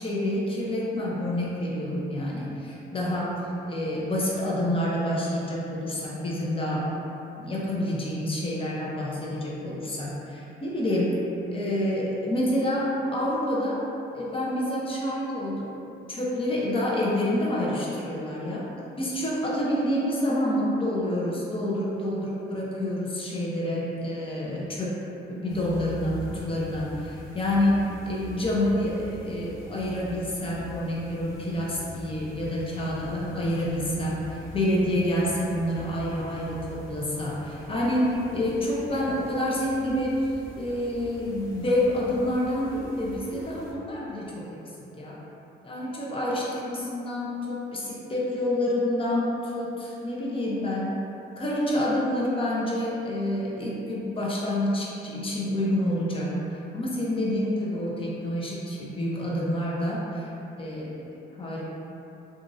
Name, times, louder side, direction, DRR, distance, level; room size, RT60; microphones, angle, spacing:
voice 1, 0.0-3.4 3.6-6.9 7.4-11.2 11.5-13.8 14.1-15.7 16.1-18.7 19.0-25.0 25.3-40.2 40.5-44.6 45.0-45.2 45.6-50.9 51.4-60.3 60.6-61.0 61.4-61.6, left 1 dB, 25° left, -5 dB, 0.7 m, -28 dB
sound 1, 25.5-43.7, equal, 85° left, 0.5 m, -43 dB
2.9 x 2.4 x 2.6 m, 2.9 s
cardioid pair, 90°, 20 cm